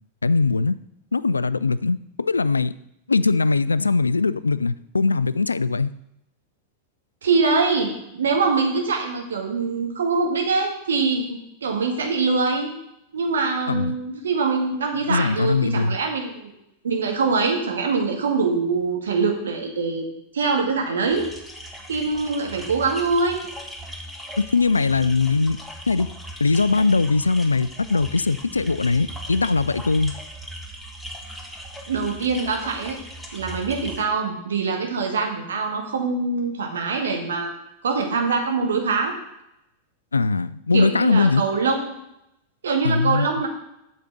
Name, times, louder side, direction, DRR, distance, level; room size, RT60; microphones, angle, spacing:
voice 1, 0.2-0.8 1.1-2.7 3.1-5.9 13.7-13.9 15.1-16.0 24.4-25.6 25.9-26.1 26.4-30.1 40.1-41.4 42.8-43.3, left 4 dB, 80° left, 18 dB, 0.3 m, -21 dB
voice 2, 7.2-12.7 13.1-16.5 16.8-20.1 20.3-21.3 21.9-23.4 31.9-33.0 33.3-37.5 37.8-39.2 40.7-42.0 42.6-43.5, right 4 dB, 65° right, 2 dB, 1.9 m, -23 dB
sound 1, 21.1-34.0, equal, ahead, 1.4 m, -38 dB
8.3 x 6.6 x 6.0 m, 0.82 s
figure-of-eight pair, 90°, 0 cm